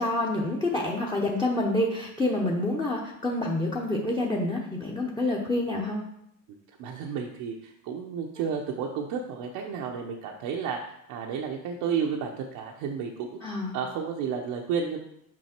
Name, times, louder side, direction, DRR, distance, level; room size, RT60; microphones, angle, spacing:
voice 1, 0.0-6.0 13.4-13.8, left 2 dB, 10° left, 0 dB, 0.9 m, -27 dB
voice 2, 6.8-10.8 11.1-13.3 13.7-15.0, right 6 dB, 70° right, 0 dB, 0.9 m, -31 dB
6.2 x 5.4 x 4.4 m, 0.78 s
cardioid pair, 115°, 38 cm